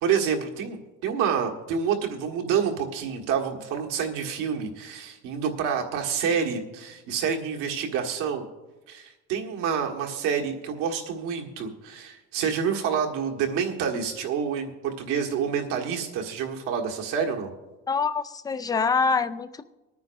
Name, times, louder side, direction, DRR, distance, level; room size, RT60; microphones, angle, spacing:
voice 1, 0.0-8.4 8.9-17.5, right 7 dB, 75° right, 2 dB, 1.7 m, -28 dB
voice 2, 17.9-19.6, left 5 dB, 10° left, 12 dB, 0.3 m, -25 dB
25.0 x 9.4 x 2.6 m, 1.1 s
cardioid pair, 130°, 32 cm